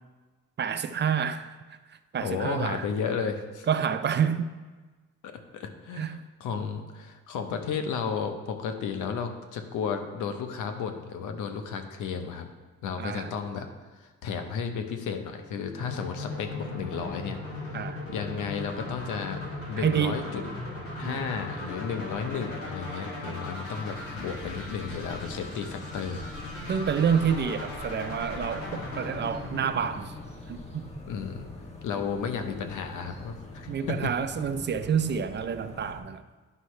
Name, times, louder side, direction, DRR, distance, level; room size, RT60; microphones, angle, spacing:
voice 1, 0.6-1.5 2.1-2.8 3.7-4.5 6.0-6.2 13.0-13.3 17.7-18.0 19.8-20.2 21.0-21.2 26.7-30.1 30.5-30.8 33.7-36.2, right 7 dB, 40° right, 11 dB, 0.4 m, -28 dB
voice 2, 2.2-3.7 5.2-12.5 12.8-19.4 19.7-20.5 21.0-26.3 31.1-31.5 31.8-34.1, left 6 dB, 80° left, 7 dB, 0.9 m, -33 dB
sound 1, 15.8-30.7, left 2 dB, 50° left, 2.4 m, -38 dB
sound 2, 23.9-36.0, left 2 dB, 20° left, 1.3 m, -44 dB
9.9 x 5.5 x 3.2 m, 1.3 s
cardioid pair, 90°, 30 cm